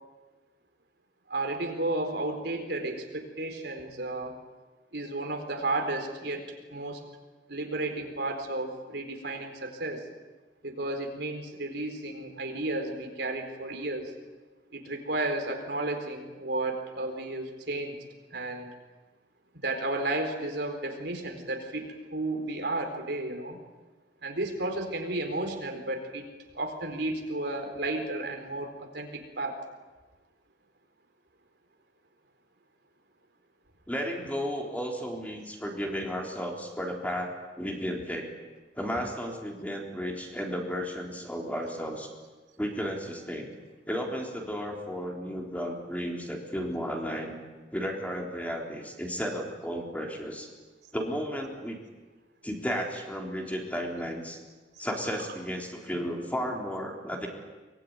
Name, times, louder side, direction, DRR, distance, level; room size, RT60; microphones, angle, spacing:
voice 1, 1.3-4.3 4.9-6.4 6.7-7.0 7.5-10.0 10.6-14.1 14.7-18.0 18.3-18.7 19.6-23.6 24.2-26.2 26.5-29.6, right 2 dB, 65° right, 4 dB, 4.2 m, -33 dB
voice 2, 33.9-37.3 37.6-38.3 38.8-42.1 42.6-43.5 43.9-47.3 47.7-50.5 50.9-51.8 52.4-54.4 54.8-57.3, equal, 10° left, 0 dB, 3.7 m, -33 dB
24.0 x 21.0 x 9.7 m, 1.2 s
head